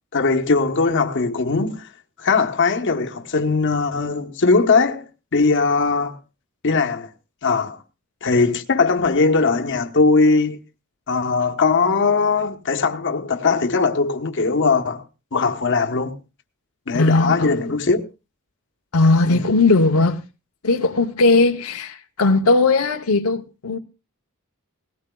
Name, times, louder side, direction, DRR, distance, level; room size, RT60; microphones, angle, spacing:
voice 1, 0.1-1.8 2.2-5.0 5.3-6.2 6.6-7.1 7.4-7.8 8.2-10.6 11.1-15.0 15.3-16.1 16.9-18.0 19.3-19.4, left 4 dB, 55° left, 1.1 m, -19 dB
voice 2, 16.9-17.5 18.9-20.2 20.6-23.8, left 3 dB, 80° left, 0.8 m, -18 dB
18.5 x 17.5 x 2.3 m
head